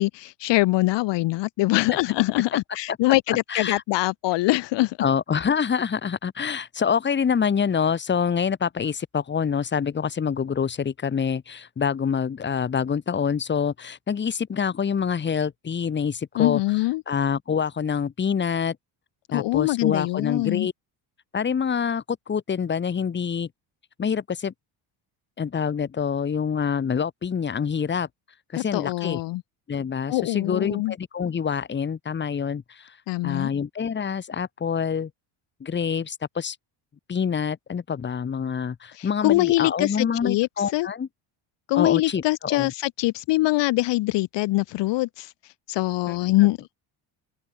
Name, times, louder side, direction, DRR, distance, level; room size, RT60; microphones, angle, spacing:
voice 1, 0.0-5.0 16.4-17.0 19.3-20.7 28.6-29.4 30.1-30.9 33.1-33.5 38.9-40.9 41.7-45.3 45.7-46.8, left 19 dB, 60° left, 0.9 m, -23 dB
voice 2, 3.3-3.8 5.0-16.6 17.1-18.8 19.3-20.7 21.3-23.5 24.0-24.5 25.4-28.1 28.5-29.2 29.7-33.0 33.2-35.1 35.6-36.6 37.1-41.1 41.7-42.7 46.1-46.2, left 7 dB, 20° left, 1.5 m, -26 dB
open air
cardioid pair, 140°, 48 cm